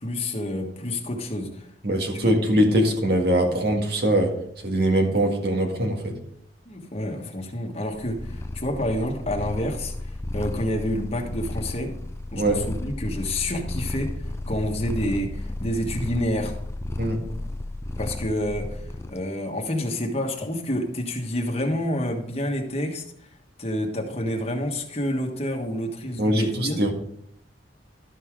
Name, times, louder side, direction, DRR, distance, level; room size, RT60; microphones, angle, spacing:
voice 1, 0.0-1.7 2.2-2.3 6.6-12.0 12.3-16.6 18.0-23.0 23.6-26.8, left 1 dB, 35° left, 2 dB, 1.4 m, -28 dB
voice 2, 1.8-4.3 4.6-6.2 12.4-12.6 17.0-17.2 26.2-26.9, right 1 dB, 60° right, 3 dB, 1.8 m, -22 dB
Purr, 7.9-19.2, left 1 dB, 15° left, 0.4 m, -33 dB
12.5 x 5.5 x 4.8 m, 0.71 s
head